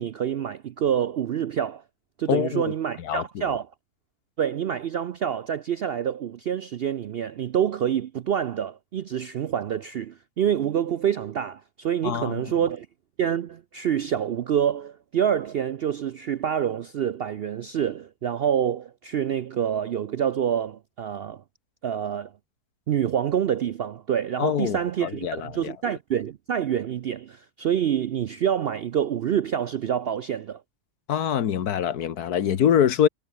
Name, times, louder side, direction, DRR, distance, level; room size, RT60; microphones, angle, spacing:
voice 1, 0.0-1.8 2.2-3.7 4.4-12.9 13.2-21.4 21.8-22.3 22.9-30.6, right 9 dB, 75° right, 0.5 m, -27 dB
voice 2, 2.3-2.7 3.0-3.4 12.0-12.3 24.4-25.7 31.1-33.1, left 9 dB, 80° left, 1.6 m, -24 dB
omnidirectional pair, 1.7 m